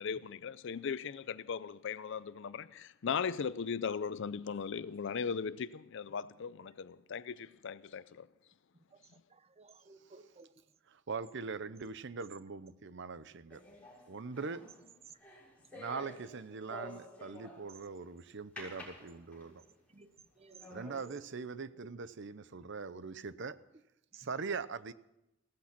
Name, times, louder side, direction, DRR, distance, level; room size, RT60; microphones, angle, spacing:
voice 1, 0.0-8.3, left 6 dB, 65° left, 0.5 m, -38 dB
voice 2, 9.3-10.5 15.1-15.2 15.7-15.8 19.4-19.6 19.9-21.2 24.1-24.3, right 5 dB, 30° right, 0.7 m, -57 dB
voice 3, 10.9-13.6 14.1-14.7 15.7-19.6 20.7-23.6 24.2-24.9, right 4 dB, 60° right, 0.7 m, -42 dB
sound 1, 13.5-17.9 18.6-19.7 20.2-20.3 20.6-21.1, left 1 dB, 5° left, 6.8 m, -50 dB
16.5 x 14.0 x 6.0 m
head